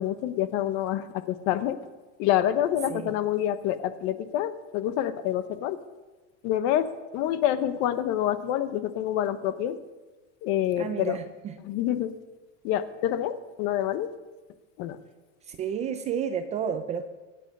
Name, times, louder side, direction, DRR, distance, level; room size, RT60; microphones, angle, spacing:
voice 1, 0.0-1.8 2.2-5.8 6.4-9.8 10.4-11.2 11.6-12.1 12.6-14.1 14.8-15.0, left 11 dB, 40° left, 12 dB, 1.0 m, -27 dB
voice 2, 10.8-11.6 15.4-17.0, right 7 dB, 20° right, 9 dB, 0.5 m, -31 dB
24.0 x 9.2 x 5.4 m, 1.2 s
supercardioid pair, 160°, 36 cm